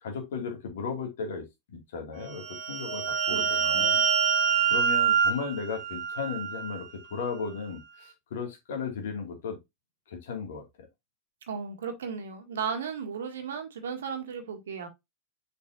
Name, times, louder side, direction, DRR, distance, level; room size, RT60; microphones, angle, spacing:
voice 1, 0.0-4.0 4.7-6.9 7.1-9.6 10.1-10.9, left 5 dB, 60° left, 2.5 m, -35 dB
sound 1, 2.3-6.8, right 7 dB, 45° right, 1.3 m, -26 dB
voice 2, 3.3-3.9 11.5-14.9, right 6 dB, 65° right, 1.8 m, -35 dB
6.6 x 5.2 x 2.8 m
figure-of-eight pair, 90°, 0 cm